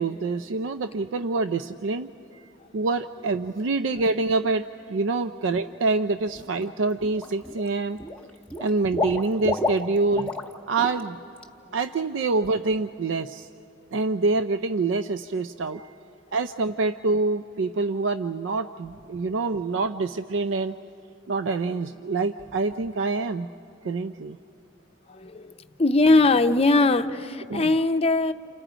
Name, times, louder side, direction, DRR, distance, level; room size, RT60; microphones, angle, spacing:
voice 1, 0.0-2.4 2.7-8.0 8.6-10.3 10.7-11.2 11.7-13.5 13.9-15.9 16.3-20.8 21.3-23.5 23.8-24.4 27.5-27.7, right 3 dB, 75° right, 10 dB, 0.4 m, -26 dB
Water / Liquid, 6.4-6.6 7.0-7.7 8.0-10.5 10.8-11.0 11.4-11.5, left 2 dB, 5° left, 1.0 m, -30 dB
voice 2, 25.1-25.5 25.8-28.3, left 2 dB, 30° left, 8 dB, 0.6 m, -20 dB
30.0 x 28.0 x 5.0 m, 2.9 s
head